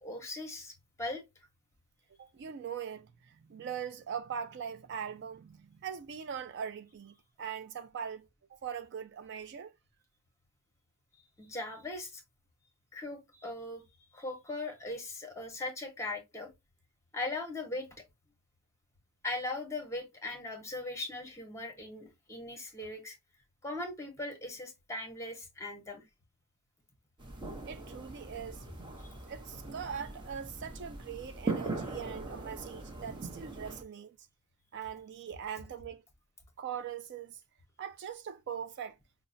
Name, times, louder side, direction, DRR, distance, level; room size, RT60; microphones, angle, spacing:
voice 1, 0.0-1.2 11.4-12.2 12.9-13.8 14.1-16.5 17.1-17.9 19.2-23.2 23.6-26.0 29.0-29.1, left 2 dB, 15° left, 0.9 m, -39 dB
voice 2, 2.2-9.8 27.6-28.7 29.3-34.2 34.7-36.0 36.6-37.4 37.8-39.0, right 7 dB, 55° right, 0.4 m, -41 dB
sound 1, 27.2-33.8, right 3 dB, 20° right, 0.8 m, -40 dB
5.4 x 2.0 x 2.5 m
head